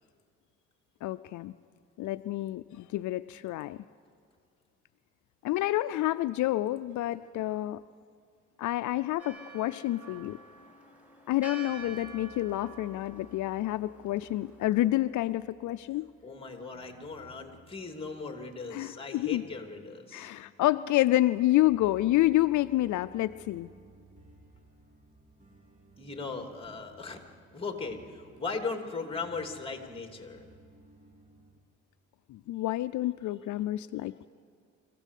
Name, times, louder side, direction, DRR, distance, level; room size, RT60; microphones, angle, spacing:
voice 1, 1.0-1.5 2.0-3.8 5.4-7.8 8.6-10.4 11.3-16.1 18.7-19.4 20.1-23.7 32.3-34.2, left 16 dB, 75° left, 12 dB, 0.5 m, -28 dB
Church bell, 9.2-14.9, right 3 dB, 5° right, 4.9 m, -48 dB
sound 1, 11.8-31.6, right 2 dB, 25° right, 2.9 m, -59 dB
voice 2, 16.2-20.3 26.0-27.2 27.5-30.5, left 4 dB, 20° left, 5 dB, 3.0 m, -38 dB
25.0 x 16.0 x 8.4 m, 2.2 s
cardioid pair, 90°, 30 cm